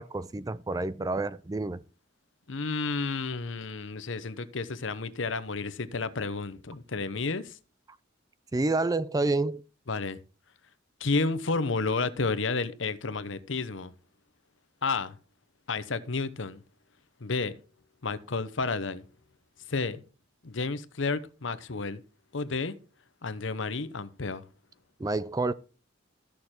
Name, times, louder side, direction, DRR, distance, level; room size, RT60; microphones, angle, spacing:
voice 1, 0.0-1.8 8.5-9.6 25.0-25.5, right 2 dB, 20° right, 0.4 m, -29 dB
voice 2, 2.5-7.6 9.9-10.2 11.0-13.9 14.8-15.2 15.7-16.6 17.2-17.5 18.0-19.0 19.7-20.0 20.4-22.0 22.3-22.8 23.2-24.4, left 3 dB, 70° left, 0.9 m, -31 dB
13.5 x 6.7 x 4.4 m
head